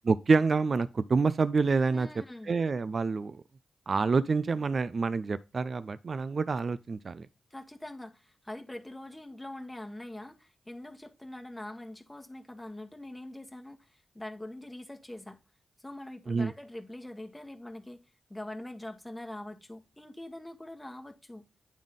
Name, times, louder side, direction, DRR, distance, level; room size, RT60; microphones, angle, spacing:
voice 1, 0.1-2.1 2.5-3.4 3.9-7.3 16.3-16.5, right 4 dB, 55° right, 0.3 m, -27 dB
voice 2, 1.9-2.5 7.5-15.4 15.8-18.0 18.3-21.5, left 1 dB, 15° left, 1.2 m, -43 dB
9.4 x 3.6 x 3.6 m
supercardioid pair, 40°, 0 cm